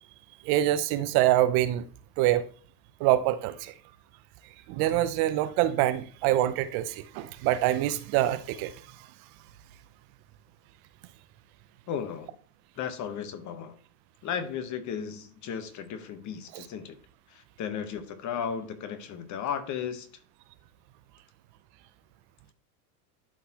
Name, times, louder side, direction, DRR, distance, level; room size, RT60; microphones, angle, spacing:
voice 1, 0.4-1.9 2.2-2.5 3.0-3.7 4.7-9.1 16.5-16.6, right 13 dB, 55° right, 0.6 m, -25 dB
voice 2, 11.9-12.3 12.8-13.8 14.2-17.0 17.3-20.1, left 7 dB, 40° left, 1.1 m, -35 dB
11.5 x 4.0 x 2.9 m
supercardioid pair, 120°, 45 cm